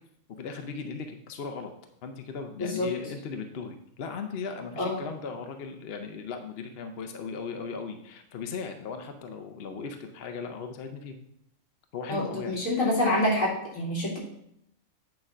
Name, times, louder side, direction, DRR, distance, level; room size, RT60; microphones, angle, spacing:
voice 1, 0.4-1.7 2.0-11.2 11.9-12.6, left 5 dB, 55° left, 6 dB, 0.8 m, -37 dB
voice 2, 12.1-14.2, left 1 dB, 70° left, -4 dB, 2.7 m, -27 dB
8.9 x 3.8 x 5.5 m, 0.75 s
omnidirectional pair, 1.4 m